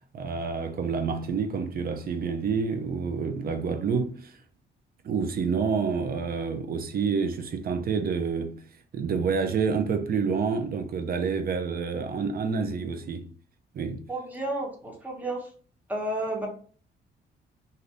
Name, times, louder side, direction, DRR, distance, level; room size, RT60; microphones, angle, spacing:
voice 1, 0.1-4.4 5.0-8.6 8.9-13.3 13.7-14.0, right 5 dB, 50° right, 0.6 m, -28 dB
voice 2, 14.1-15.4 15.9-16.5, right 1 dB, 10° right, 1.0 m, -31 dB
2.7 x 2.6 x 3.2 m
cardioid pair, 90°, 20 cm